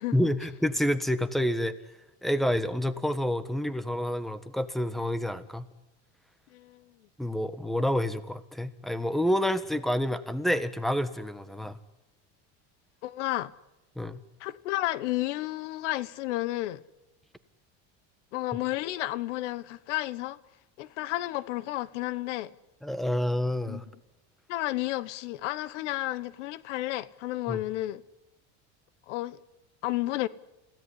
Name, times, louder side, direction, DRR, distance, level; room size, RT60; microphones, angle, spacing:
voice 1, 0.1-1.8 2.2-5.7 7.2-11.8 13.9-14.2 22.8-23.8 27.5-27.6, equal, ahead, 1.5 m, -28 dB
voice 2, 6.5-6.8 13.0-13.5 14.4-16.8 18.3-20.4 20.8-22.5 23.7-23.8 24.5-28.0 29.1-29.4 29.8-30.3, left 16 dB, 85° left, 1.2 m, -32 dB
29.0 x 17.0 x 9.8 m
supercardioid pair, 120°, 35 cm